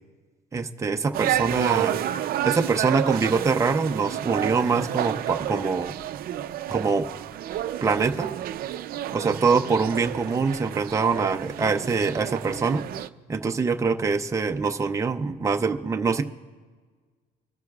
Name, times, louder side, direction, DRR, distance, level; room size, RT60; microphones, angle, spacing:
voice 1, 0.5-2.0 2.4-5.9 6.7-7.1 7.8-8.3 9.1-12.9 13.3-16.2, right 4 dB, 15° right, 4 dB, 0.6 m, -24 dB
sound 1, 1.1-13.1, right 12 dB, 60° right, 0.5 m, -30 dB
24.5 x 12.5 x 2.4 m, 1.5 s
cardioid pair, 110°, 17 cm